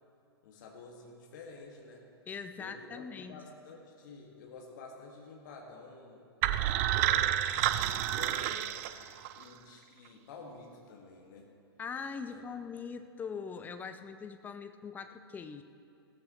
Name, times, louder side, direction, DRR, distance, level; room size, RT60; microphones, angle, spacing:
voice 1, 0.4-2.0 2.6-6.3 6.9-8.7 9.3-11.5 12.3-12.5, left 4 dB, 50° left, 1 dB, 1.8 m, -50 dB
voice 2, 2.3-3.4 11.8-15.6, left 5 dB, 15° left, 9 dB, 0.5 m, -42 dB
sound 1, 6.4-9.4, right 12 dB, 35° right, 0.5 m, -29 dB
16.0 x 14.0 x 3.0 m, 2.7 s
figure-of-eight pair, 105°, 13 cm